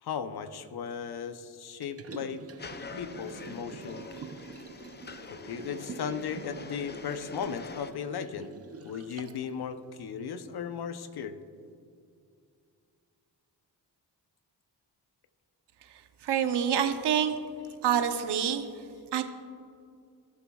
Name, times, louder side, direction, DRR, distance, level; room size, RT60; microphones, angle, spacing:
voice 1, 0.0-2.4 3.0-4.0 5.3-8.5 8.8-11.4, left 7 dB, 65° left, 10 dB, 0.8 m, -36 dB
Liquid, 1.8-9.5 9.9-10.0, right 4 dB, 35° right, 0.7 m, -46 dB
sound 1, 2.6-7.9, left 4 dB, 25° left, 0.6 m, -45 dB
voice 2, 16.2-17.4 17.8-18.7 19.1-19.2, right 9 dB, 70° right, 8 dB, 0.8 m, -26 dB
18.0 x 7.1 x 2.4 m, 2.3 s
cardioid pair, 60°, 42 cm